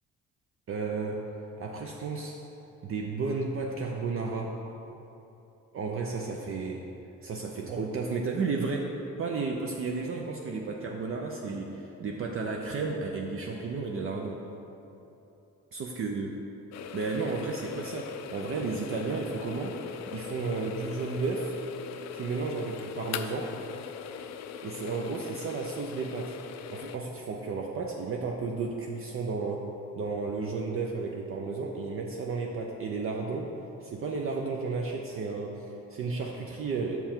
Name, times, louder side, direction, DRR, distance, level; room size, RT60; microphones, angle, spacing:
voice 1, 0.7-1.2 1.6-2.4 2.8-4.6 5.7-6.8 7.2-14.4 15.7-16.3 16.9-19.8 20.1-21.5 22.1-23.5 24.6-26.4 26.7-33.5 33.8-37.0, right 4 dB, 45° right, 0 dB, 0.6 m, -33 dB
sound 1, 16.7-27.0, left 7 dB, 60° left, 0.4 m, -40 dB
5.8 x 5.5 x 4.4 m, 3.0 s
cardioid pair, 85°, 30 cm